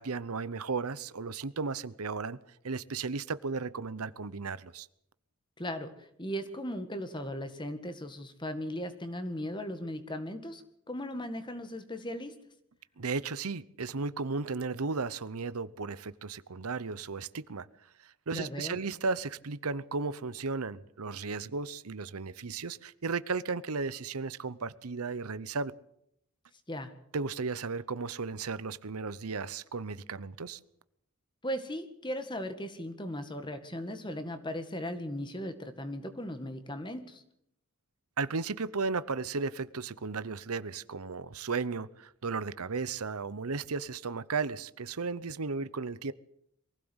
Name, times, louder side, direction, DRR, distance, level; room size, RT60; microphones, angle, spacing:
voice 1, 0.0-2.4 2.6-4.9 13.0-17.7 18.0-25.7 27.1-30.6 38.2-46.1, right 4 dB, 80° right, 0.8 m, -35 dB
voice 2, 5.6-12.4 18.3-18.8 26.7-26.9 31.4-37.2, equal, 20° left, 1.8 m, -37 dB
23.0 x 16.0 x 8.0 m
head